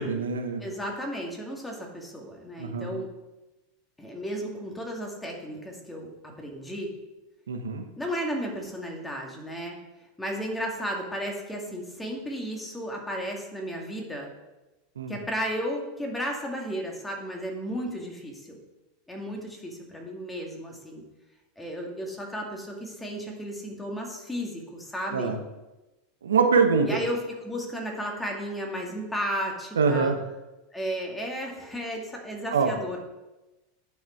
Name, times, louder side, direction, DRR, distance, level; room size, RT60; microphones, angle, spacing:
voice 1, 0.0-0.6 2.6-2.9 7.5-7.8 15.0-15.1 25.1-25.4 26.2-27.0 29.8-30.2 32.5-32.7, right 5 dB, 80° right, 6 dB, 0.8 m, -24 dB
voice 2, 0.6-3.1 4.0-6.9 8.0-9.8 10.2-14.3 15.1-18.6 19.1-21.0 21.6-25.4 26.9-30.1 30.7-33.0, equal, 10° left, 0 dB, 2.1 m, -34 dB
9.2 x 5.9 x 4.5 m, 1.0 s
hypercardioid pair, 90°, 0 cm